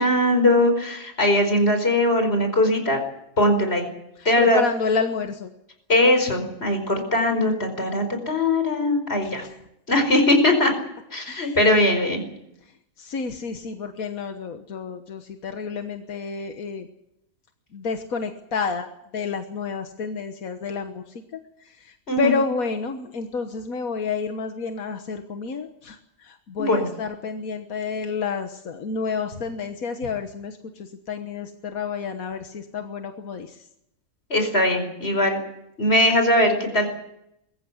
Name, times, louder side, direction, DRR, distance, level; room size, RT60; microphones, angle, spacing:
voice 1, 0.0-3.0 3.4-3.9 4.3-4.6 5.9-9.4 9.9-10.7 11.1-12.2 22.1-22.3 26.6-26.9 34.3-35.4 35.8-36.9, left 1 dB, 45° left, 5 dB, 5.1 m, -20 dB
voice 2, 4.4-5.5 9.2-9.3 11.2-11.6 13.0-16.9 17.7-21.0 21.3-21.4 21.8-33.6, left 5 dB, 85° left, 6 dB, 1.7 m, -30 dB
22.5 x 14.5 x 9.6 m, 0.80 s
omnidirectional pair, 1.5 m